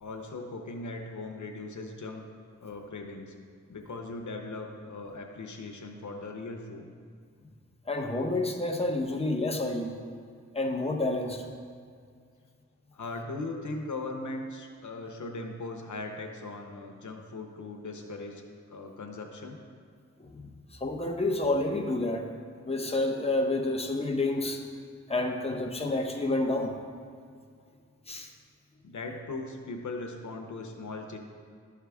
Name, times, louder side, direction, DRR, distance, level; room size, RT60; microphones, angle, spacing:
voice 1, 0.0-2.2 2.6-3.3 3.7-6.8 12.9-18.4 18.7-19.6 28.8-31.2, left 2 dB, 85° left, 3 dB, 0.8 m, -39 dB
voice 2, 7.9-9.9 10.5-11.4 20.2-22.3 22.7-24.6 25.1-26.7 28.1-28.3, left 2 dB, 20° left, 1 dB, 0.9 m, -29 dB
12.0 x 4.7 x 3.5 m, 2.1 s
wide cardioid pair, 60°, 29 cm